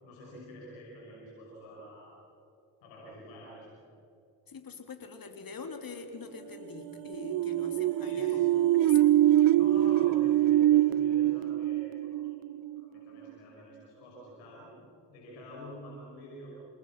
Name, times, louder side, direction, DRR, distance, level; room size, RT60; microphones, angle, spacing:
voice 1, 0.0-2.2 2.8-3.7 8.0-8.4 9.5-12.4 12.8-14.7 15.1-16.5, equal, 90° left, -4 dB, 6.0 m, -47 dB
voice 2, 4.5-8.5 8.7-9.1, left 4 dB, 45° left, 6 dB, 3.1 m, -44 dB
sound 1, 6.0-14.5 14.8-14.9, right 13 dB, 80° right, 1.2 m, -47 dB
sound 2, 7.2-12.8, right 13 dB, 50° right, 0.5 m, -24 dB
29.0 x 19.0 x 5.9 m, 2.7 s
hypercardioid pair, 50°, 46 cm